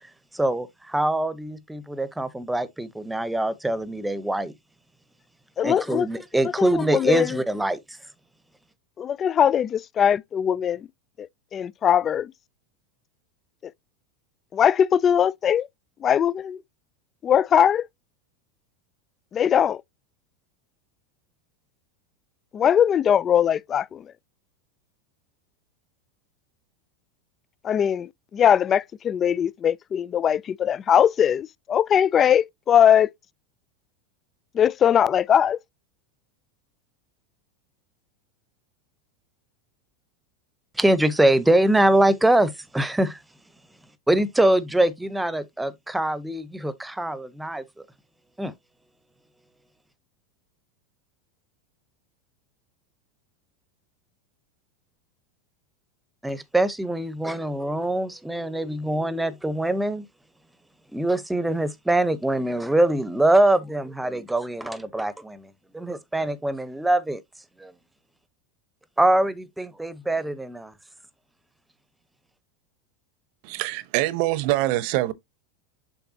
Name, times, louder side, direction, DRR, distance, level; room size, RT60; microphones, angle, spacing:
voice 1, 0.3-4.5 5.6-8.0 40.8-43.2 44.1-47.6 48.4-48.5 56.2-60.1 60.9-67.2 67.6-67.7 69.0-70.7, right 1 dB, 5° right, 0.9 m, -23 dB
voice 2, 5.6-6.1 6.7-7.4 9.0-10.9 11.2-12.3 14.5-15.7 16.0-16.6 17.2-17.9 19.3-19.8 22.5-24.0 27.6-33.1 34.5-35.6, left 9 dB, 30° left, 0.4 m, -20 dB
voice 3, 73.4-75.1, right 17 dB, 60° right, 0.9 m, -24 dB
7.1 x 5.7 x 2.8 m
hypercardioid pair, 110°, 0 cm